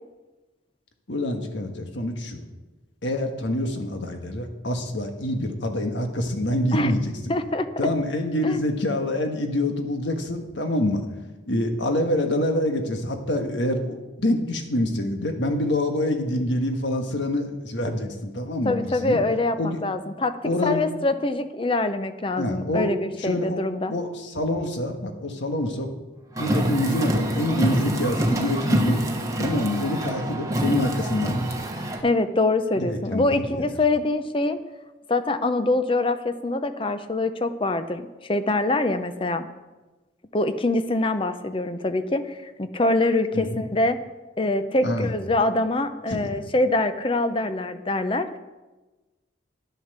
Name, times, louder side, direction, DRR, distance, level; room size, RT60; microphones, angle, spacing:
voice 1, 1.1-2.4 3.0-7.4 7.8-11.0 11.5-19.2 19.6-19.8 20.4-20.8 22.4-22.9 23.2-23.6 23.9-25.9 26.4-29.0 29.4-31.5 32.8-33.5 43.3-43.6 44.8-45.1 46.1-46.3, left 1 dB, 70° left, 5 dB, 1.5 m, -26 dB
voice 2, 7.3-7.7 8.4-8.6 18.6-20.4 20.6-23.9 32.0-34.6 35.1-39.5 40.3-44.0 44.4-48.3, left 2 dB, 30° left, 10 dB, 0.6 m, -24 dB
Car, 26.4-32.0, right 1 dB, 15° right, 1.1 m, -26 dB
10.5 x 8.3 x 6.7 m, 1.2 s
head